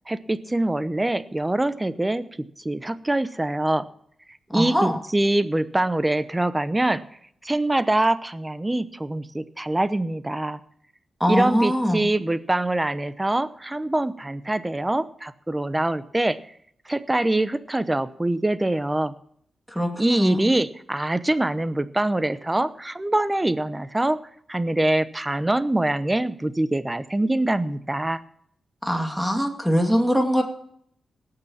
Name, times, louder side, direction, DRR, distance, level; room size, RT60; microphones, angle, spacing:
voice 1, 0.1-2.2 2.6-3.8 4.5-7.0 7.4-10.6 11.3-16.4 16.9-19.1 20.0-24.2 24.5-28.2, right 1 dB, 15° right, 14 dB, 0.8 m, -24 dB
voice 2, 4.5-5.0 11.2-12.1 19.7-20.5 28.8-30.4, equal, ahead, 3 dB, 2.4 m, -22 dB
17.5 x 6.8 x 7.3 m, 0.67 s
cardioid pair, 75°, 0 cm